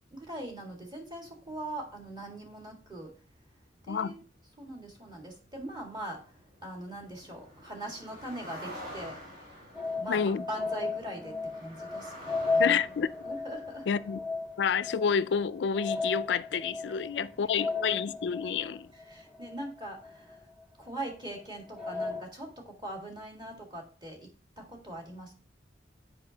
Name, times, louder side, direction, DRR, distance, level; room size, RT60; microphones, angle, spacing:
voice 1, 0.1-3.1 3.8-4.2 4.6-9.2 9.9-13.9 17.1-17.7 18.9-20.4 20.8-24.3 24.6-25.3, right 1 dB, 25° right, 1.8 m, -42 dB
sound 1, 1.3-16.6 16.8-17.2 17.6-17.8, equal, 55° right, 3.8 m, -50 dB
sound 2, 9.7-20.6 21.0-21.1 21.7-22.2, left 3 dB, 5° right, 1.2 m, -35 dB
voice 2, 10.1-10.4 12.6-13.1 13.9-14.2 14.6-18.9, left 6 dB, 70° left, 0.4 m, -29 dB
7.8 x 5.0 x 2.8 m
head